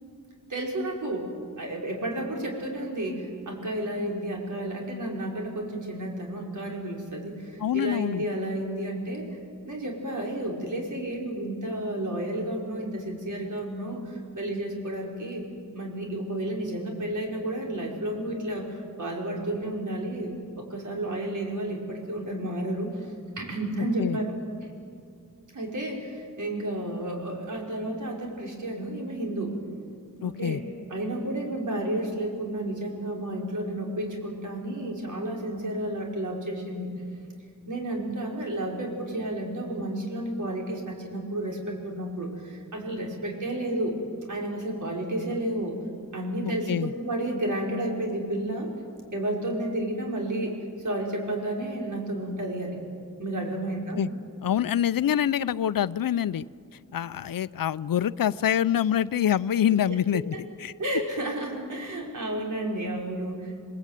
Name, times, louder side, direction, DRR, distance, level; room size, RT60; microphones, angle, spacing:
voice 1, 0.5-9.3 9.6-15.5 15.7-24.3 25.5-29.6 30.2-30.6 30.9-36.9 37.7-44.0 44.3-45.8 46.1-48.7 49.1-50.5 50.8-52.8 53.2-54.0 60.3-60.4 60.8-63.7, right 1 dB, 65° right, 0 dB, 5.5 m, -31 dB
voice 2, 7.6-8.2 24.0-24.2 30.2-30.6 46.4-46.9 54.0-54.1 54.4-56.5 56.9-60.3 60.6-60.7, left 10 dB, 80° left, 17 dB, 0.6 m, -25 dB
28.5 x 21.0 x 9.2 m, 2.3 s
wide cardioid pair, 145°, 33 cm